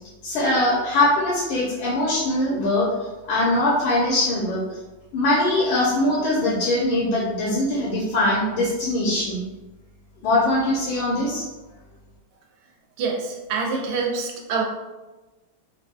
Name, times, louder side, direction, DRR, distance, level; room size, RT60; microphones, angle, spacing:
voice 1, 0.2-2.9 3.2-4.6 5.1-9.4 10.2-11.4, left 1 dB, 80° left, -6 dB, 1.6 m, -22 dB
voice 2, 13.0-14.6, right 4 dB, 85° right, 1 dB, 1.5 m, -26 dB
4.4 x 2.6 x 2.2 m, 1.1 s
omnidirectional pair, 2.4 m